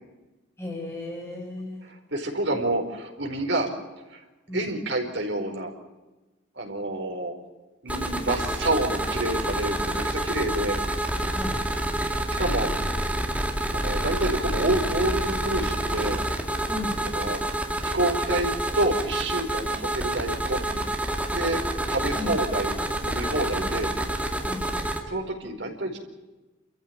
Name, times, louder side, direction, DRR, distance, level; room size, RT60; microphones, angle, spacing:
voice 1, 0.6-1.8 4.5-4.7 11.3-11.6 16.7-17.0 22.1-22.4 23.6-23.7 24.4-24.6, left 2 dB, 15° left, 0 dB, 6.2 m, -34 dB
voice 2, 1.9-3.7 4.1-4.2 4.5-5.7 6.6-7.4 7.8-10.8 12.0-12.7 13.7-16.2 17.0-17.4 17.8-20.8 21.3-21.6 21.9-23.9 25.1-26.0, right 1 dB, 65° right, 3 dB, 4.7 m, -28 dB
sound 1, 7.9-25.0, right 1 dB, 5° right, 2.2 m, -28 dB
28.5 x 14.5 x 8.9 m, 1.1 s
head